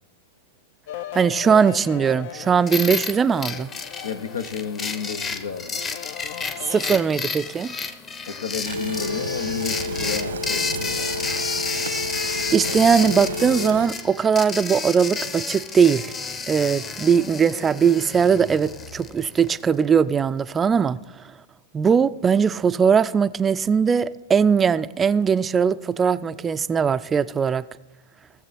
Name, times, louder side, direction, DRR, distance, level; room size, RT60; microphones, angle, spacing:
sound 1, 0.9-7.0, left 11 dB, 60° left, 0.5 m, -38 dB
voice 1, 1.1-3.7 6.6-7.7 12.5-16.1 16.5-21.0 21.7-27.6, right 6 dB, 20° right, 0.4 m, -20 dB
sound 2, 2.7-19.6, left 5 dB, 25° left, 0.9 m, -31 dB
voice 2, 4.0-5.8 8.3-11.3, left 6 dB, 85° left, 0.9 m, -32 dB
Telephone, 8.7-13.9, equal, 85° right, 1.0 m, -30 dB
17.5 x 7.2 x 4.2 m
hypercardioid pair, 110°, 0 cm